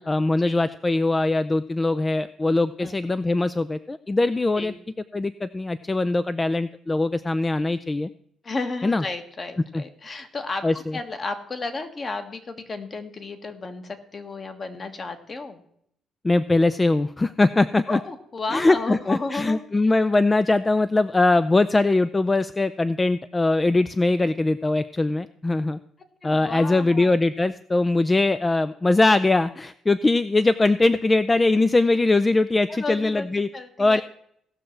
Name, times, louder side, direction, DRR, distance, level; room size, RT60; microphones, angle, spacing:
voice 1, 0.1-4.7 5.1-8.1 8.8-9.0 9.7-9.8 10.6-11.0 16.2-18.0 18.5-25.8 26.2-33.5 33.8-34.0, left 2 dB, 20° left, 13 dB, 0.4 m, -21 dB
voice 2, 8.4-10.7 10.9-15.6 17.9-19.6 26.2-27.1 32.7-33.3 33.5-34.0, left 3 dB, 35° left, 7 dB, 1.5 m, -33 dB
17.5 x 6.3 x 4.5 m, 0.70 s
cardioid pair, 90°, 0 cm